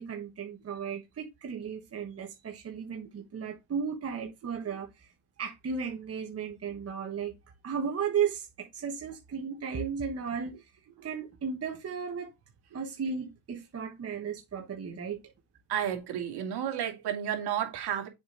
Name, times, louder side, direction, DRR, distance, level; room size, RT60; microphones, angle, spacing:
voice 1, 0.0-5.1 5.4-7.3 7.6-10.5 11.0-12.3 12.7-15.3, right 6 dB, 30° right, 1.4 m, -35 dB
voice 2, 15.7-18.1, right 9 dB, 55° right, 2.5 m, -32 dB
7.0 x 5.2 x 3.9 m
supercardioid pair, 95°, 46 cm